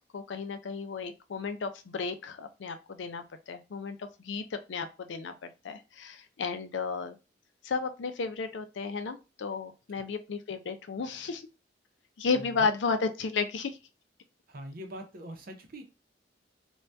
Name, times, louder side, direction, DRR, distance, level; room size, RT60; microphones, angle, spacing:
voice 1, 0.1-7.2 7.6-11.4 12.2-13.8, left 4 dB, 75° left, 8 dB, 0.4 m, -33 dB
voice 2, 12.3-12.7 14.5-15.8, right 1 dB, 50° right, 4 dB, 0.7 m, -43 dB
2.6 x 2.2 x 3.3 m, 0.28 s
head